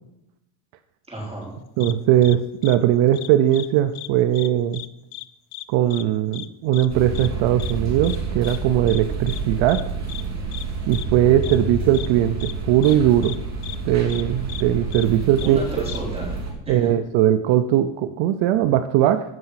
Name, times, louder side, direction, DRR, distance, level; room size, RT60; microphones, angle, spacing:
voice 1, 1.1-1.5 11.5-12.0 15.4-16.3 16.7-16.8, equal, 10° right, -4 dB, 4.3 m, -33 dB
sound 1, 1.8-1.9 2.2-2.4 2.6-2.8 3.1-3.7 3.9-4.1 4.3-4.9 5.1-5.3 5.5-5.7 5.9-6.0 6.3-6.5 6.7-6.9 7.1-7.3 7.6-7.7 8.0-8.2 8.4-8.6 8.9-9.0 9.3-9.4 9.7-9.8 10.1-10.2 10.5-10.6 10.9-11.1 11.4-11.6 11.9-12.1 12.4-12.5 12.8-13.0 13.2-13.4 13.6-13.8 14.1-14.2 14.5-14.6 14.9-15.1 15.4-15.5 15.9-16.0, left 19 dB, 75° left, 0.8 m, -36 dB
voice 2, 1.8-4.8 5.7-9.8 10.9-13.4 13.8-15.6 16.7-19.2, right 11 dB, 65° right, 10 dB, 0.7 m, -19 dB
sound 2, 6.9-16.5, right 4 dB, 35° right, 2.7 m, -29 dB
15.5 x 5.7 x 5.8 m, 0.86 s
cardioid pair, 155°, 49 cm